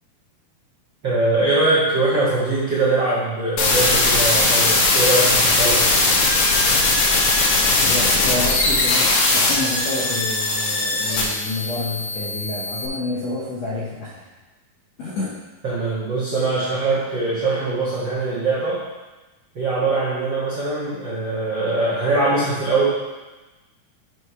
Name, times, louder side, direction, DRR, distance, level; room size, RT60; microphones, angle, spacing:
voice 1, 1.0-5.8 15.6-18.8 19.5-22.9, right 2 dB, 70° right, -9 dB, 1.1 m, -22 dB
sound 1, 3.6-12.9, left 2 dB, 65° left, 1.9 m, -19 dB
voice 2, 7.9-14.2 15.0-15.4, left 2 dB, 80° left, -6 dB, 1.5 m, -29 dB
6.4 x 4.9 x 5.6 m, 1.2 s
omnidirectional pair, 4.6 m